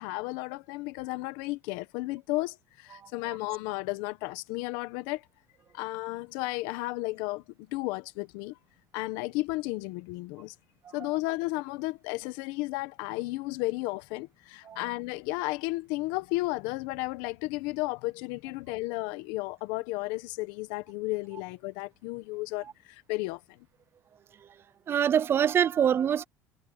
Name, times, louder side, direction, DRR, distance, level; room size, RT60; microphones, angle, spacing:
voice 1, 0.0-5.2 5.7-8.6 8.9-10.5 10.9-23.7, left 21 dB, 80° left, 1.2 m, -33 dB
voice 2, 24.9-26.2, right 8 dB, 35° right, 0.6 m, -24 dB
cardioid pair, 130°, 7 cm